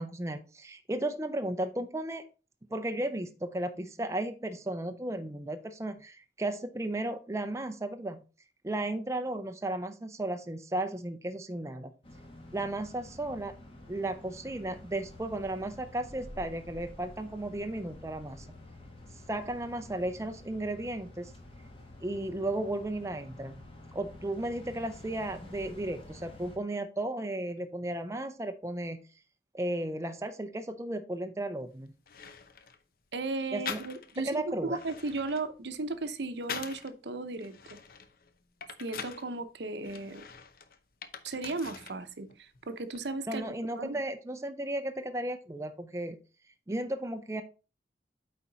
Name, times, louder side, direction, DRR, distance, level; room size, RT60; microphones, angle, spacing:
voice 1, 0.0-2.3 2.7-8.2 8.6-11.9 12.5-13.5 13.9-18.5 19.3-21.3 22.0-23.6 23.9-29.0 29.5-31.9 33.5-33.8 34.3-34.8 43.3-46.2 46.7-47.4, right 1 dB, 15° right, 7 dB, 0.5 m, -34 dB
sound 1, 12.0-26.6, left 1 dB, 30° left, 1.5 m, -49 dB
sound 2, 31.6-31.7 32.1-32.8 33.7-34.3 34.6-36.9 37.4-39.3 39.8-42.0 42.3-43.1, left 6 dB, 50° left, 0.7 m, -43 dB
voice 2, 33.1-37.8 38.8-40.3 41.2-44.0, right 3 dB, 70° right, 11 dB, 0.8 m, -36 dB
8.6 x 4.3 x 4.0 m, 0.32 s
head